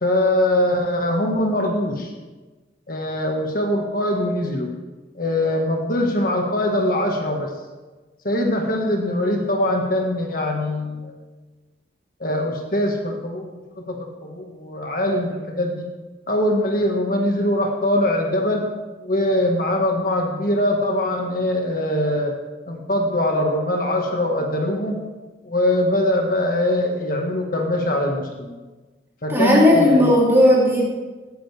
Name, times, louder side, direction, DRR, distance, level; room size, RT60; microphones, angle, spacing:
voice 1, 0.0-2.1 2.9-4.7 5.2-7.5 8.2-11.1 12.2-15.9 16.3-18.7 19.0-22.3 22.7-25.0 25.4-28.6 29.2-30.1, left 1 dB, 50° left, 1 dB, 1.7 m, -22 dB
voice 2, 29.3-30.9, left 1 dB, 15° right, -5 dB, 3.3 m, -15 dB
16.5 x 13.5 x 3.5 m, 1.3 s
head